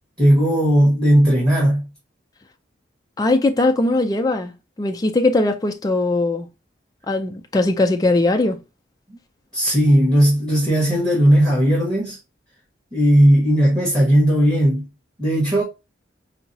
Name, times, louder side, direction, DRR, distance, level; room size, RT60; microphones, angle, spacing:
voice 1, 0.2-1.8 9.5-12.2 12.9-14.9 15.2-15.6, equal, 20° right, 1.2 m, -16 dB
voice 2, 3.2-4.5 4.8-6.5 7.1-8.6, left 2 dB, 20° left, 0.3 m, -19 dB
4.5 x 2.0 x 2.7 m
head